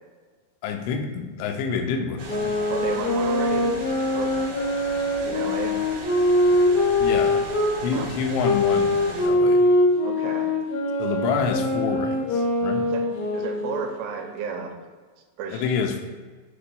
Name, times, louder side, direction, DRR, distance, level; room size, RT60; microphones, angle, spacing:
voice 1, 0.6-2.5 7.0-7.5 7.8-9.7 11.0-12.9 15.5-16.0, left 6 dB, 85° left, 3 dB, 3.1 m, -28 dB
sound 1, 2.2-7.8 8.4-14.0, left 1 dB, 65° left, 2.0 m, -23 dB
sound 2, 2.2-9.3, right 3 dB, 65° right, 2.5 m, -38 dB
voice 2, 2.7-3.7 4.1-4.3 5.3-5.8 7.9-8.1 10.0-10.5 12.9-13.0 13.3-14.8 15.4-15.6, right 6 dB, 85° right, 3 dB, 3.2 m, -32 dB
8.4 x 5.7 x 2.2 m, 1.4 s
omnidirectional pair, 5.4 m